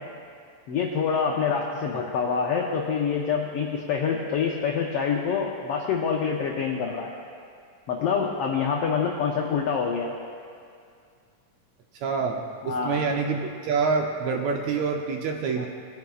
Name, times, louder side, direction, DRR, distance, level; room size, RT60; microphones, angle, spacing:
voice 1, 0.7-7.1 7.9-10.1 12.6-13.0 15.6-15.7, left 6 dB, 85° left, 0 dB, 1.3 m, -26 dB
voice 2, 12.0-15.7, right 5 dB, 75° right, 2 dB, 1.8 m, -27 dB
19.5 x 9.4 x 2.4 m, 2.3 s
omnidirectional pair, 3.6 m